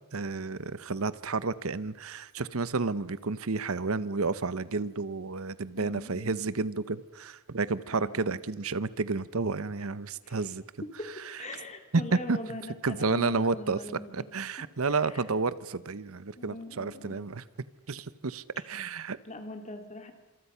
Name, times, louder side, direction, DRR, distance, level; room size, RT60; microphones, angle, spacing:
voice 1, 0.1-10.6 12.3-12.4 12.8-13.8 14.1-17.4 17.9-19.2, right 4 dB, 75° right, 16 dB, 0.9 m, -31 dB
voice 2, 5.8-6.5 7.9-8.4 10.2-10.6 11.0-11.1 11.4-14.3 14.8-15.3 16.4-17.2 18.5-20.1, left 1 dB, 30° left, 6 dB, 2.8 m, -42 dB
27.0 x 26.5 x 5.7 m, 1.1 s
head